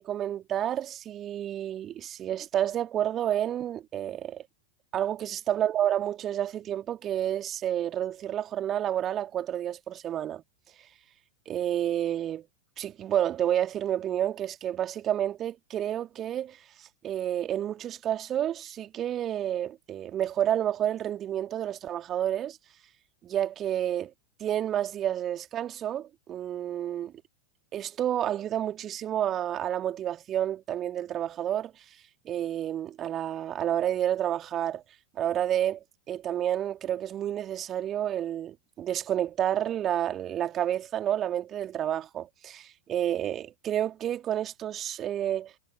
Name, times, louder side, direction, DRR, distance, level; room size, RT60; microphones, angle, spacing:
voice 1, 0.0-4.4 4.9-10.4 11.5-12.5 12.8-22.6 23.2-24.1 24.4-27.1 27.7-31.8 32.2-34.8 35.2-45.5, right 11 dB, 30° right, 2.5 m, -30 dB
figure-of-eight pair, 90°, 0 cm